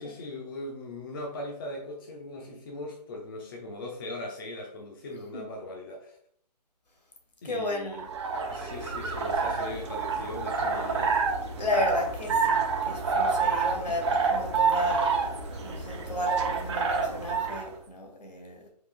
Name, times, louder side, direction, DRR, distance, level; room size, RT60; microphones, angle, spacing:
voice 1, 0.0-6.2 7.4-8.1 8.5-11.2, left 1 dB, 35° left, 0 dB, 0.7 m, -39 dB
voice 2, 7.4-8.1 11.6-18.7, left 1 dB, 75° left, 1 dB, 1.9 m, -33 dB
sound 1, 7.9-17.7, right 5 dB, 45° right, 1.0 m, -28 dB
5.4 x 4.0 x 2.5 m, 0.66 s
hypercardioid pair, 155°, 21 cm